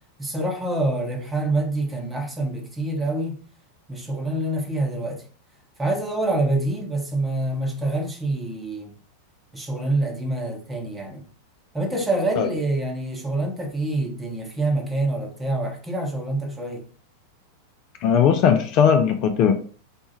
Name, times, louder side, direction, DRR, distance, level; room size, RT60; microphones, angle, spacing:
voice 1, 0.2-3.4 3.9-5.2 5.8-8.9 9.5-11.3 11.7-16.9, right 2 dB, 10° right, 1.0 m, -26 dB
voice 2, 18.0-19.5, left 7 dB, 40° left, 0.5 m, -18 dB
4.3 x 2.3 x 4.2 m
figure-of-eight pair, 90°, 0 cm